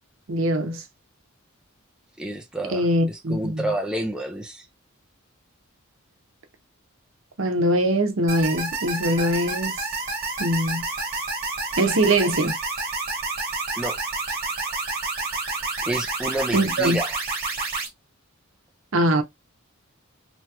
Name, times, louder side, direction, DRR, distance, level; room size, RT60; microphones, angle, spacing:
voice 1, 0.3-0.8 2.7-3.7 7.4-9.8 10.4-10.8 11.8-12.6 16.5-17.0 18.9-19.2, right 1 dB, 65° right, 0.7 m, -22 dB
voice 2, 2.2-4.7 13.8-14.0 15.9-17.1, right 1 dB, 5° right, 0.4 m, -29 dB
sound 1, 8.3-17.9, right 3 dB, 45° right, 1.1 m, -29 dB
2.9 x 2.3 x 2.8 m
head